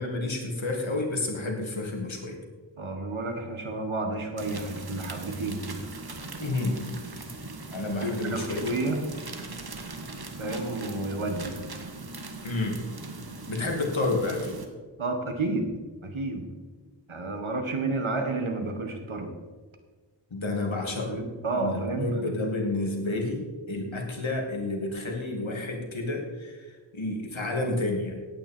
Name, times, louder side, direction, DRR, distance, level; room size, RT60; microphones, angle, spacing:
voice 1, 0.0-2.4 6.4-6.9 7.7-8.7 12.4-12.8 13.5-14.6 20.3-21.2 21.5-28.1, left 2 dB, 75° left, 1 dB, 2.6 m, -30 dB
voice 2, 2.8-5.9 8.0-9.0 10.4-11.6 15.0-15.8 16.0-16.5 17.1-19.3 21.1-22.1, right 2 dB, 85° right, 5 dB, 1.8 m, -31 dB
sound 1, 4.4-14.7, right 3 dB, 50° right, 1.5 m, -40 dB
17.0 x 9.2 x 4.5 m, 1.4 s
wide cardioid pair, 60°, 47 cm